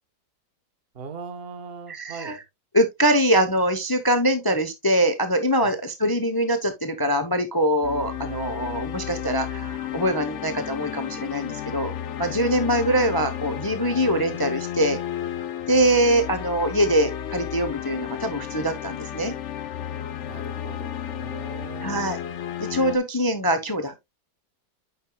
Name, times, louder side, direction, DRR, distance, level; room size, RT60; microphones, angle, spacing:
voice 1, 0.9-2.4 5.6-5.7 8.2-9.1 20.2-22.1, right 5 dB, 35° right, 1.1 m, -40 dB
voice 2, 1.9-2.4 2.7-11.9 12.2-15.0 15.7-19.3 21.8-22.2 22.6-23.9, equal, 30° left, 0.4 m, -23 dB
sound 1, 7.8-23.0, left 10 dB, 60° left, 0.7 m, -33 dB
8.8 x 6.6 x 2.3 m
omnidirectional pair, 2.0 m